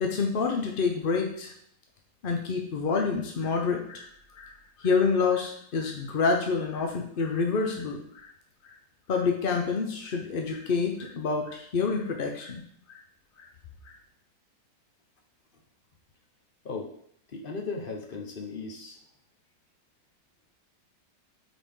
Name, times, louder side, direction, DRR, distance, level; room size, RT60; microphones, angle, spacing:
voice 1, 0.0-1.5 2.2-4.1 4.3-8.3 8.6-8.7 9.1-12.6 12.9-13.0 13.8-14.0, left 4 dB, 60° left, 2 dB, 0.5 m, -28 dB
voice 2, 17.3-19.0, left 4 dB, 35° left, 1 dB, 1.0 m, -36 dB
9.2 x 4.1 x 3.7 m, 0.65 s
omnidirectional pair, 2.0 m